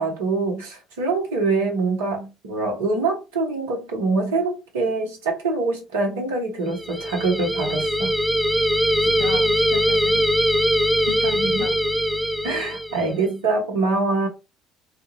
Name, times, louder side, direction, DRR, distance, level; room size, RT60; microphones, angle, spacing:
voice 1, 0.0-8.1 11.4-11.6 12.4-14.3, right 3 dB, 70° right, 0.8 m, -24 dB
sound 1, 6.7-13.1, equal, ahead, 0.3 m, -21 dB
voice 2, 9.0-10.2 11.0-11.8 12.9-13.1, left 5 dB, 70° left, 0.4 m, -34 dB
2.3 x 2.1 x 2.9 m
figure-of-eight pair, 55°, 0 cm